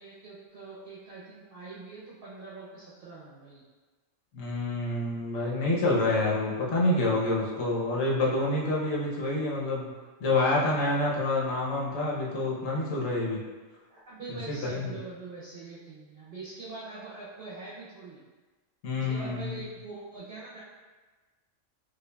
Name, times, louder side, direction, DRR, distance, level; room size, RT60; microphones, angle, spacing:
voice 1, 0.0-3.6 13.9-18.2 19.0-20.6, right 3 dB, 55° right, -8 dB, 0.7 m, -43 dB
voice 2, 4.3-9.9 10.2-13.4 14.3-14.4 14.7-14.9 18.8-19.6, left 2 dB, 80° left, -4 dB, 1.2 m, -27 dB
4.9 x 2.4 x 2.2 m, 1.3 s
omnidirectional pair, 1.3 m